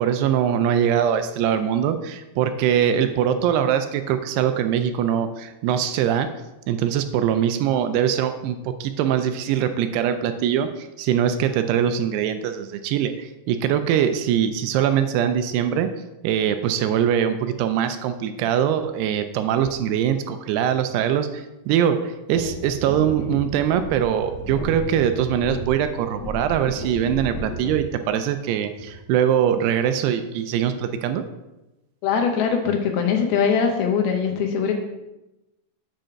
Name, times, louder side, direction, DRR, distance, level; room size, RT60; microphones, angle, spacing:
voice 1, 0.0-6.3 6.7-15.9 16.2-31.2, right 9 dB, 80° right, 9 dB, 2.6 m, -22 dB
sound 1, 22.3-27.9 28.8-28.9, equal, 55° left, 2.0 m, -33 dB
voice 2, 32.0-34.8, left 6 dB, 75° left, 4 dB, 2.5 m, -21 dB
7.4 x 5.3 x 5.7 m, 0.98 s
omnidirectional pair, 4.9 m